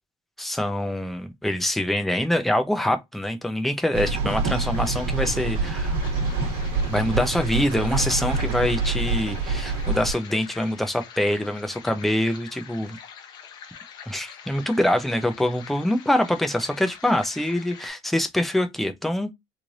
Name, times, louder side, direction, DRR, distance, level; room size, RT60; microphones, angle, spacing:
voice 1, 0.4-6.0 6.9-13.0 14.1-19.3, left 1 dB, ahead, 0.4 m, -25 dB
sound 1, 3.9-10.1, right 3 dB, 80° right, 1.2 m, -26 dB
sound 2, 4.6-17.9, left 7 dB, 45° left, 0.6 m, -45 dB
3.2 x 2.4 x 3.8 m
cardioid pair, 170°, 10 cm